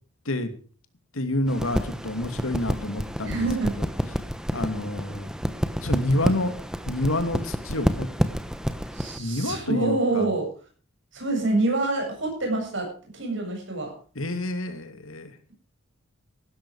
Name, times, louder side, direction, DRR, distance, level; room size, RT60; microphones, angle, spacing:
voice 1, 1.1-3.4 4.5-5.3 5.8-6.5 6.9-8.1 9.2-10.3 14.2-15.3, left 1 dB, 80° left, 8 dB, 2.7 m, -28 dB
sound 1, 1.5-9.2, equal, 5° right, 1.0 m, -29 dB
voice 2, 3.2-3.7 4.5-4.7 8.9-10.5 11.1-12.9 13.1-13.9, right 2 dB, 60° right, 1 dB, 7.6 m, -26 dB
16.0 x 13.0 x 5.0 m, 0.40 s
head